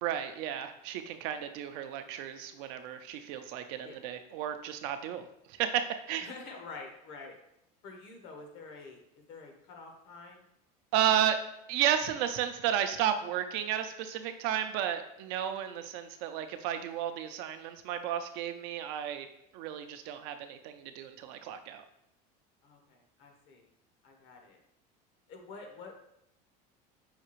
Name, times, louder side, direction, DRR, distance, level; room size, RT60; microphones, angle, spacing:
voice 1, 0.0-6.3 10.9-11.4 11.7-19.3 19.5-21.8, right 10 dB, 70° right, 8 dB, 0.5 m, -33 dB
voice 2, 6.2-7.4 7.8-9.0 9.3-10.4 22.6-23.7 24.0-24.6 25.3-26.0, left 4 dB, 60° left, 3 dB, 1.0 m, -47 dB
5.7 x 2.4 x 3.0 m, 0.78 s
supercardioid pair, 115°, 20 cm